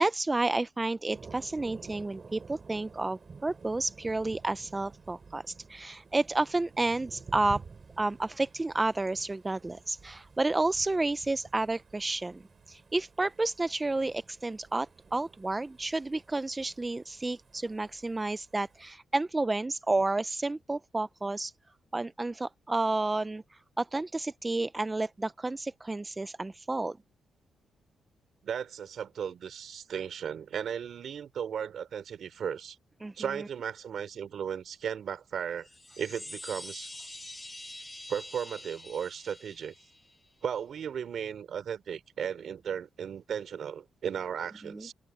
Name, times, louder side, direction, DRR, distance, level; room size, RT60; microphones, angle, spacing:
voice 1, 0.0-7.6 8.0-12.4 12.7-21.5 21.9-27.0 33.0-33.1 44.6-44.9, right 2 dB, 15° right, 0.4 m, -31 dB
Thunder, 1.1-18.9, right 5 dB, 35° right, 5.8 m, -51 dB
voice 2, 28.4-32.8 33.2-35.7 36.0-36.9 38.1-39.7 40.4-44.9, right 8 dB, 60° right, 4.5 m, -36 dB
Chime, 35.6-40.3, left 1 dB, 10° left, 2.4 m, -45 dB
open air
cardioid pair, 120°, 0 cm